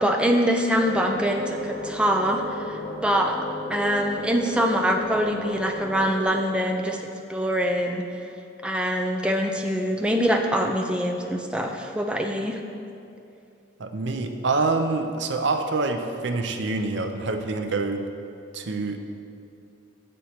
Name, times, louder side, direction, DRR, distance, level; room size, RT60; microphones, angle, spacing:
voice 1, 0.0-3.4 3.7-8.3 8.6-12.6, equal, 5° right, 3 dB, 0.4 m, -24 dB
sound 1, 0.7-6.2, left 1 dB, 75° left, 1.6 m, -34 dB
voice 2, 13.8-18.1 18.5-19.0, right 3 dB, 65° right, 6 dB, 0.5 m, -26 dB
6.8 x 6.3 x 4.3 m, 2.7 s
head